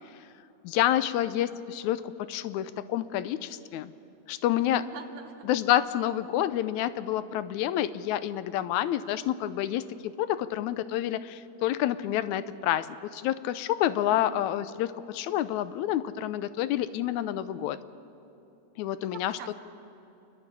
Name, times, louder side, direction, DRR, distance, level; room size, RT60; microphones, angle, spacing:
voice 1, 0.6-3.9 4.3-4.9 5.5-12.9 13.1-17.8 18.8-19.4, left 12 dB, 80° left, 14 dB, 2.0 m, -28 dB
voice 2, 4.6-5.4 14.1-14.5 19.0-19.5, right 8 dB, 85° right, 5 dB, 2.9 m, -44 dB
28.0 x 11.5 x 8.4 m, 2.9 s
omnidirectional pair, 3.3 m